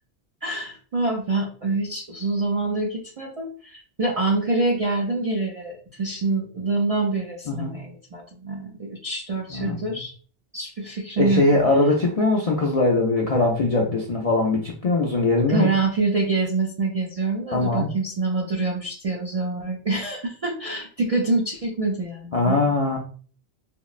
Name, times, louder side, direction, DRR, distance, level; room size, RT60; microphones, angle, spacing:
voice 1, 0.4-10.1 10.5-11.5 15.5-22.6, right 3 dB, 55° right, -2 dB, 0.4 m, -26 dB
voice 2, 11.2-15.7 17.5-17.9 22.3-23.0, left 2 dB, 55° left, -1 dB, 0.4 m, -21 dB
3.6 x 2.0 x 2.3 m, 0.42 s
omnidirectional pair, 1.1 m